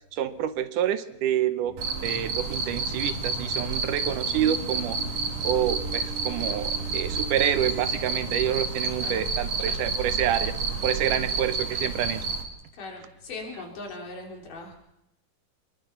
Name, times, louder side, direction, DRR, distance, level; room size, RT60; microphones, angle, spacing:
voice 1, 0.1-1.7 2.0-5.0 5.4-10.5 10.8-12.3, right 10 dB, 75° right, 12 dB, 2.3 m, -27 dB
sound 1, 1.6-7.8, right 4 dB, 40° right, 7.6 m, -41 dB
Cricket, 1.8-12.4, right 4 dB, 55° right, 2.8 m, -30 dB
sound 2, 2.4-12.3, left 2 dB, 40° left, 8.2 m, -41 dB
voice 2, 8.9-9.3 11.0-11.2 12.7-14.7, left 3 dB, 75° left, 0 dB, 5.0 m, -39 dB
23.5 x 21.5 x 5.9 m, 0.85 s
omnidirectional pair, 3.8 m